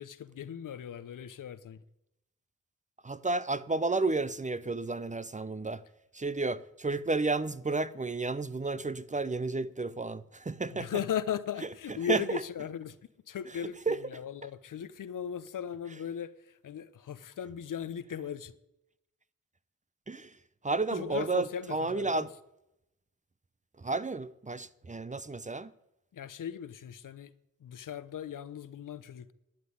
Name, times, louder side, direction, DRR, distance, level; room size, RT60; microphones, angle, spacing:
voice 1, 0.0-1.8 10.7-13.0 13.3-18.5 20.9-22.3 26.1-27.3 27.6-29.3, left 8 dB, 75° left, 0.9 m, -37 dB
voice 2, 3.0-5.8 6.1-10.9 12.1-12.4 13.9-14.0 20.1-20.4 20.6-22.3 23.8-25.7, right 3 dB, 25° right, 0.7 m, -32 dB
12.0 x 9.3 x 9.4 m
cardioid pair, 60°, 32 cm